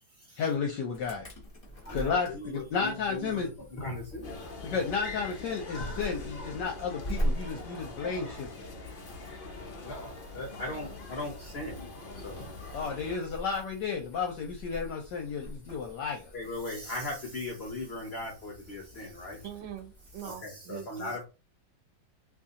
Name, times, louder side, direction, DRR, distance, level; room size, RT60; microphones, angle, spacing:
voice 1, 0.4-1.3 1.9-3.5 4.6-8.5 12.7-16.3, left 5 dB, 70° left, 1.2 m, -32 dB
Insect / Alarm, 0.9-20.4, right 1 dB, 20° left, 1.1 m, -42 dB
voice 2, 1.8-4.4 5.8-5.9 9.8-11.9 12.1-12.7 16.3-19.4 20.2-21.2, left 2 dB, 55° left, 0.7 m, -38 dB
sound 1, 4.2-13.2, left 2 dB, 90° left, 0.4 m, -43 dB
voice 3, 19.4-21.2, right 10 dB, 90° right, 1.4 m, -43 dB
3.0 x 2.7 x 3.6 m
omnidirectional pair, 2.1 m